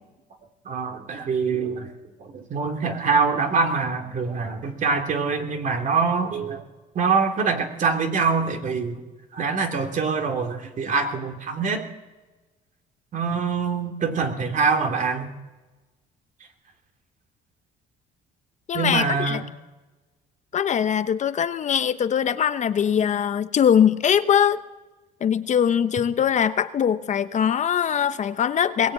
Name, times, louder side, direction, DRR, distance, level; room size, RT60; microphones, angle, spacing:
voice 1, 0.6-1.9 2.2-6.6 6.9-9.0 9.3-11.8 13.1-15.3 18.7-19.5, right 5 dB, 50° right, 4 dB, 2.9 m, -24 dB
voice 2, 18.7-19.4 20.5-24.6 25.2-28.9, left 8 dB, 45° left, 11 dB, 0.9 m, -22 dB
21.0 x 17.5 x 8.7 m, 1.2 s
cardioid pair, 110°, 17 cm